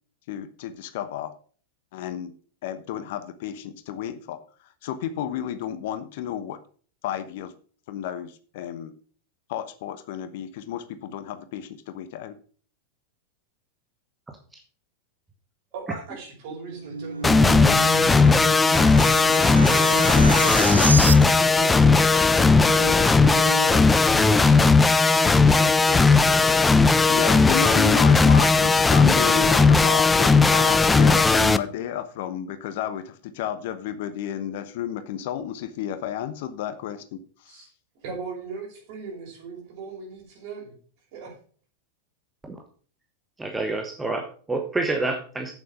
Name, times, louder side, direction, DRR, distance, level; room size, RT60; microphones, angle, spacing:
voice 1, 0.3-1.3 1.9-2.3 2.6-4.4 4.8-6.6 7.0-7.5 7.9-8.9 9.5-12.4 27.1-37.6, left 10 dB, 50° left, 12 dB, 0.9 m, -31 dB
voice 2, 14.3-14.6 42.4-42.6 43.4-45.5, right 3 dB, 10° right, 3 dB, 1.2 m, -28 dB
voice 3, 15.7-26.6 37.5-37.7 38.0-40.7 41.1-41.4, right 4 dB, 50° right, 0 dB, 5.3 m, -38 dB
sound 1, 16.5-21.6, right 4 dB, 75° right, 0.4 m, -30 dB
sound 2, 17.2-31.6, left 4 dB, 10° left, 0.5 m, -17 dB
8.4 x 7.4 x 5.3 m, 0.43 s
figure-of-eight pair, 90°, 0 cm